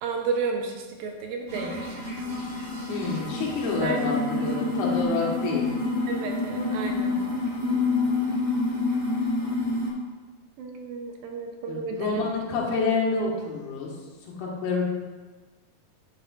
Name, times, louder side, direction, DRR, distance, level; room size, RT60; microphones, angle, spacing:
voice 1, 0.0-1.8 3.8-4.0 6.1-7.2 10.6-12.3, right 4 dB, 75° right, 2 dB, 2.5 m, -32 dB
sound 1, 1.5-9.9, left 3 dB, 10° right, 1.9 m, -28 dB
voice 2, 2.9-5.7 11.7-13.9 14.2-14.8, left 4 dB, 85° left, -3 dB, 3.5 m, -28 dB
9.8 x 8.5 x 2.5 m, 1.3 s
omnidirectional pair, 4.4 m